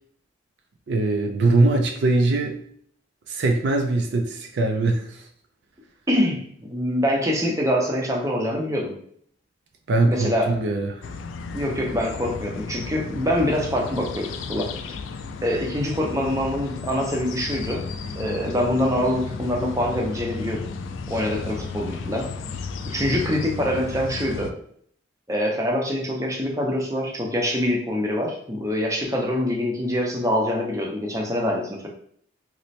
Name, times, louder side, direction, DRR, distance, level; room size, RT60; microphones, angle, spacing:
voice 1, 0.9-2.6 3.3-5.2 9.9-11.0, right 2 dB, 65° right, 3 dB, 0.4 m, -21 dB
voice 2, 6.1-8.9 10.1-10.5 11.5-14.7 15.4-17.8 18.1-20.6 21.1-22.3 22.9-24.5 25.3-31.9, equal, 15° right, -1 dB, 0.6 m, -25 dB
sound 1, 11.0-24.5, left 4 dB, 90° left, 0.3 m, -34 dB
3.1 x 2.1 x 4.1 m, 0.62 s
head